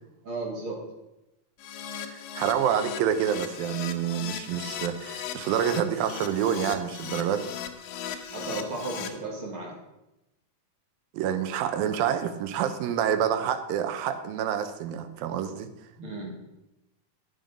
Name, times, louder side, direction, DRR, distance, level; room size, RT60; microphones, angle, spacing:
voice 1, 0.2-0.8 8.3-9.8 16.0-16.4, right 2 dB, 40° right, -1 dB, 2.4 m, -34 dB
Keyboard (musical), 1.6-9.1, left 9 dB, 85° left, 2.5 m, -38 dB
voice 2, 2.0-7.5 11.1-15.7, right 9 dB, 90° right, 8 dB, 2.6 m, -27 dB
12.0 x 7.7 x 5.2 m, 0.93 s
omnidirectional pair, 4.0 m